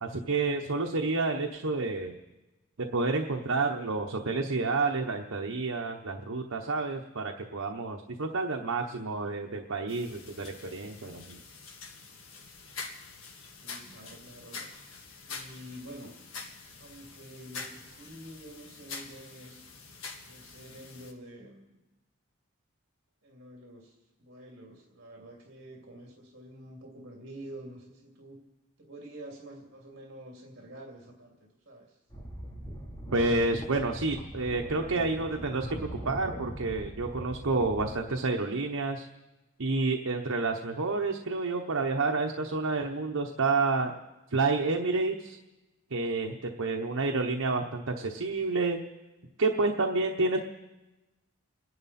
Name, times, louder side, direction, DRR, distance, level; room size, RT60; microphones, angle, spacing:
voice 1, 0.0-2.2 2.8-11.4 33.1-39.1 39.6-43.9 44.3-45.4 45.9-48.8 49.4-50.4, right 3 dB, 80° right, 2 dB, 1.0 m, -29 dB
sound 1, 9.9-21.1, left 4 dB, 75° left, 1.9 m, -45 dB
voice 2, 13.6-14.7 15.3-16.1 16.8-19.6 20.3-21.8 23.2-28.4 28.8-32.0, right 1 dB, 55° right, -1 dB, 2.7 m, -48 dB
sound 2, 32.1-37.9, equal, 20° left, 3.4 m, -41 dB
29.0 x 11.0 x 4.3 m, 1.1 s
head